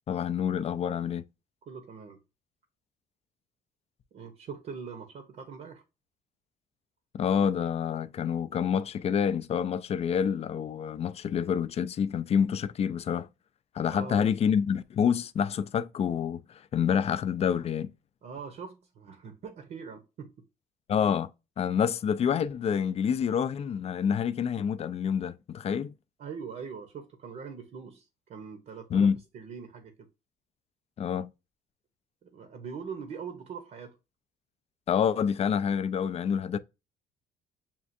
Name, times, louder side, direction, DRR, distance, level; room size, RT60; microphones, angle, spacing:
voice 1, 0.1-1.2 7.1-13.3 13.7-17.9 20.9-21.3 21.6-25.9 28.9-29.2 31.0-31.3 34.9-36.6, left 7 dB, 40° left, 0.4 m, -27 dB
voice 2, 1.7-2.2 4.1-5.8 13.9-14.3 18.2-20.3 26.2-29.1 29.3-30.1 32.2-34.0, right 6 dB, 55° right, 0.8 m, -42 dB
7.2 x 2.4 x 2.6 m
cardioid pair, 110°, 17 cm